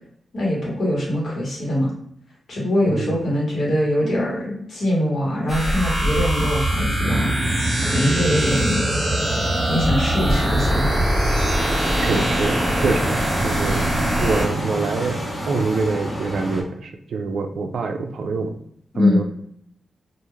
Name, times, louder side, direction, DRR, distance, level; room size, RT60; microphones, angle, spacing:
voice 1, 0.3-1.9 2.5-7.3 7.8-8.9 9.7-11.0 18.9-19.2, left 1 dB, 65° left, -5 dB, 1.3 m, -22 dB
sound 1, 5.5-14.5, right 1 dB, 15° right, 0.8 m, -22 dB
sound 2, 7.1-16.6, equal, 35° left, 0.8 m, -29 dB
voice 2, 12.0-13.2 13.4-13.9 14.2-15.2 15.5-18.5 19.0-19.2, right 4 dB, 75° right, 5 dB, 0.4 m, -25 dB
2.4 x 2.4 x 3.0 m, 0.70 s
wide cardioid pair, 100°, 0 cm